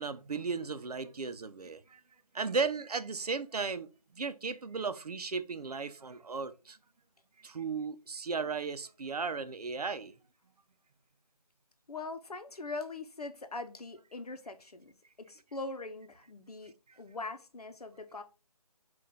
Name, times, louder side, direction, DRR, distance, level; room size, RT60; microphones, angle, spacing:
voice 1, 0.0-2.0 2.3-6.8 7.4-10.1, right 4 dB, 85° right, 0.6 m, -35 dB
voice 2, 11.9-14.9 15.2-18.2, left 3 dB, 80° left, 0.8 m, -42 dB
5.8 x 2.5 x 3.6 m
figure-of-eight pair, 170°, 19 cm